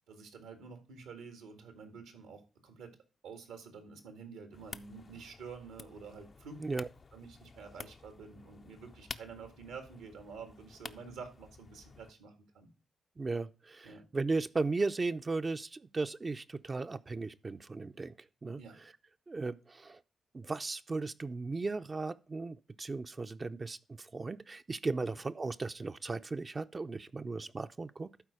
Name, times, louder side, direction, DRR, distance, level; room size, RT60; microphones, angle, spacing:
voice 1, 0.1-3.0 3.2-6.7 7.1-12.7 13.8-14.0 18.6-18.8 25.0-25.1, right 5 dB, 90° right, 1.7 m, -49 dB
sound 1, 4.5-12.1, left 4 dB, 50° left, 0.6 m, -51 dB
voice 2, 13.2-18.1 18.4-18.9 19.3-20.0 20.3-28.3, right 3 dB, 40° right, 0.5 m, -36 dB
12.0 x 4.5 x 4.9 m
supercardioid pair, 45°, 0 cm